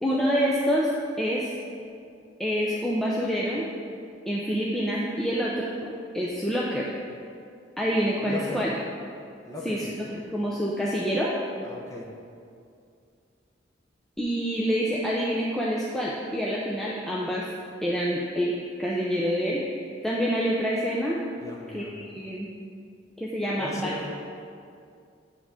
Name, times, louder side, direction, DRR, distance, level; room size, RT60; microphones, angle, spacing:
voice 1, 0.0-0.9 1.2-1.5 2.4-3.7 4.3-6.9 7.8-8.7 9.6-11.3 14.2-17.4 17.8-18.5 18.8-21.2 21.7-22.5 23.2-23.9, equal, ahead, -5 dB, 0.6 m, -27 dB
voice 2, 8.2-8.7 9.4-9.9 11.6-12.1 21.4-21.9 23.6-24.1, left 1 dB, 20° left, -2 dB, 1.1 m, -37 dB
9.6 x 3.7 x 6.2 m, 2.4 s
head